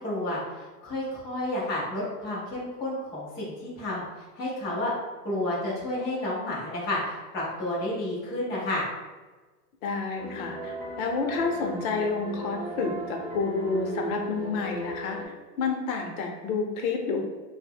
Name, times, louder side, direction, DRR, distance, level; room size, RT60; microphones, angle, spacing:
voice 1, 0.0-4.0 4.4-4.9 5.2-8.9, left 1 dB, 10° left, -9 dB, 0.3 m, -31 dB
voice 2, 9.8-17.2, left 4 dB, 60° left, 3 dB, 0.7 m, -29 dB
sound 1, 10.2-15.2, right 1 dB, 25° right, 0.7 m, -36 dB
2.6 x 2.1 x 3.4 m, 1.3 s
hypercardioid pair, 125°, 48 cm